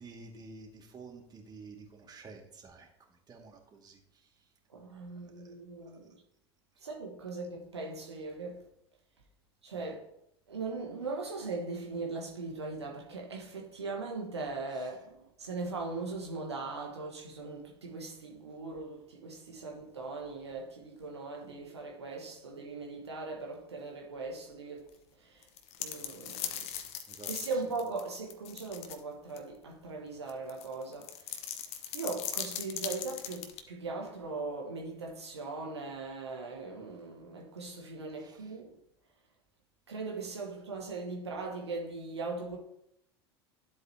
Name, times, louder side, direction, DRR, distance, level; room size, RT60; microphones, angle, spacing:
voice 1, 0.0-4.3 5.2-5.5 5.8-6.0 9.7-9.9 26.5-27.3 38.2-38.5, right 4 dB, 30° right, 2.2 m, -51 dB
voice 2, 4.7-6.1 6.8-8.7 9.6-10.1 10.5-25.5 25.8-26.7 27.3-31.6 31.9-38.8 39.9-42.6, right 3 dB, 80° right, 1.4 m, -39 dB
sound 1, 25.4-29.0 29.4-29.5 30.3-33.6, left 10 dB, 50° left, 1.1 m, -39 dB
12.0 x 7.9 x 2.9 m
figure-of-eight pair, 75°, 14 cm